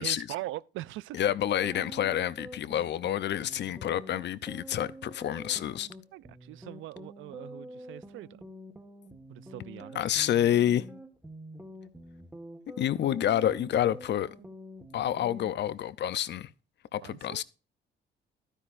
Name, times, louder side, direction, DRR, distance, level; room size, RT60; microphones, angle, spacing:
voice 1, 0.0-1.2 6.1-8.4 9.3-10.0 17.0-17.4, right 16 dB, 80° right, 0.4 m, -41 dB
voice 2, 1.1-5.9 9.9-10.9 12.8-14.4 14.9-16.5 16.9-17.4, left 11 dB, 60° left, 0.6 m, -28 dB
sound 1, 1.6-15.5, equal, 10° right, 1.5 m, -47 dB
12.0 x 10.0 x 2.5 m
cardioid pair, 90°, 20 cm